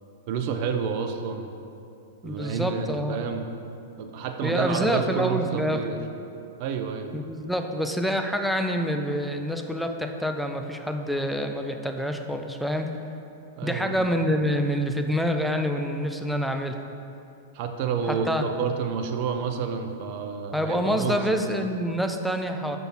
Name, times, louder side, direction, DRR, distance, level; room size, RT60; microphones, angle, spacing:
voice 1, 0.3-1.5 2.2-3.5 4.0-6.0 6.6-7.1 13.5-13.9 17.5-21.4, right 6 dB, 45° right, 6 dB, 0.6 m, -29 dB
voice 2, 2.2-3.4 4.4-5.8 7.1-12.9 13.6-16.8 18.1-18.4 20.5-22.8, equal, ahead, 5 dB, 0.5 m, -27 dB
6.1 x 5.1 x 4.4 m, 2.7 s
figure-of-eight pair, 100°, 0 cm